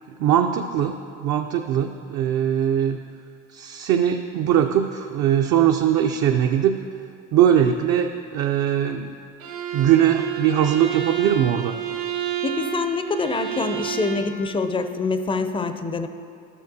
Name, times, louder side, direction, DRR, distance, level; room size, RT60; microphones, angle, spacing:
voice 1, 0.1-3.0 3.5-6.8 7.3-9.1 9.7-11.8, right 9 dB, 50° right, 4 dB, 0.4 m, -21 dB
Bowed string instrument, 9.4-14.3, right 10 dB, 70° right, 1.2 m, -30 dB
voice 2, 12.4-16.1, left 4 dB, 15° left, 9 dB, 0.4 m, -25 dB
12.0 x 6.4 x 2.7 m, 2.4 s
supercardioid pair, 80°, 36 cm